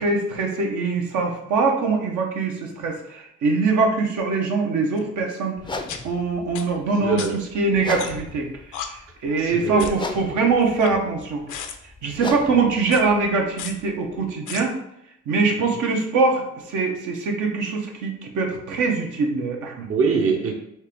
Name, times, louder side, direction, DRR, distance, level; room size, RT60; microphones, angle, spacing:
voice 1, 0.0-5.5 6.0-11.4 12.0-14.7 15.3-19.9, right 4 dB, 80° right, 1 dB, 0.9 m, -23 dB
sound 1, 5.0-5.1 5.9-6.0 6.6-6.7 7.2-7.3 8.0-8.3 8.7-8.9 9.8-10.0 10.6-11.2 11.5-11.8 12.8-13.0 13.6-13.7 14.5-14.6, left 8 dB, 80° left, 0.6 m, -33 dB
sound 2, 5.6-14.3, left 3 dB, 15° left, 0.4 m, -37 dB
voice 2, 7.0-7.4 9.4-10.0 19.9-20.5, right 5 dB, 50° right, 2 dB, 0.7 m, -23 dB
4.4 x 2.9 x 3.4 m, 0.76 s
cardioid pair, 90°, 30 cm